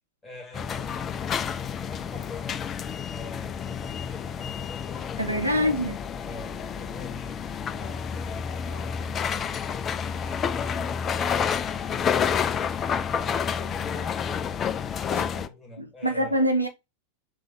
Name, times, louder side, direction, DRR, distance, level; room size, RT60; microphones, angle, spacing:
voice 1, 0.2-2.6 3.1-4.7 5.1-5.8 6.2-9.6 10.0-12.6 13.0-16.4, left 1 dB, 5° left, 2.0 m, -45 dB
sound 1, 0.5-15.5, left 7 dB, 25° left, 0.4 m, -29 dB
voice 2, 5.0-6.0 16.0-16.7, equal, 85° right, 0.7 m, -24 dB
3.4 x 3.2 x 3.8 m
figure-of-eight pair, 90°, 0 cm